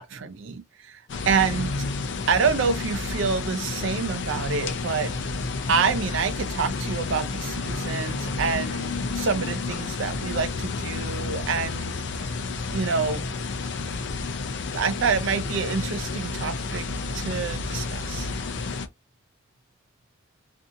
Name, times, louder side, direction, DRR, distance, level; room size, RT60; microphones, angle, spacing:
voice 1, 0.0-1.8 2.3-5.1 5.7-11.9 12.7-13.3 14.7-16.9 17.1-18.3, right 5 dB, 75° right, 0.5 m, -27 dB
sound 1, 1.1-18.9, left 3 dB, 60° left, 0.4 m, -30 dB
2.6 x 2.6 x 2.5 m
head